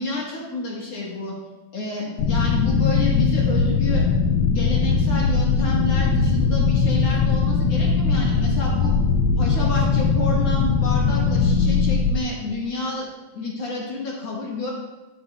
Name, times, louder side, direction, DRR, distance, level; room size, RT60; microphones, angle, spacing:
voice 1, 0.0-1.3 1.7-4.0 4.5-9.0 9.4-13.1 13.3-14.7, left 2 dB, 60° left, -3 dB, 1.8 m, -30 dB
sound 1, 2.2-12.2, left 5 dB, 80° left, 2.2 m, -20 dB
9.3 x 9.3 x 2.2 m, 1.1 s
omnidirectional pair, 4.4 m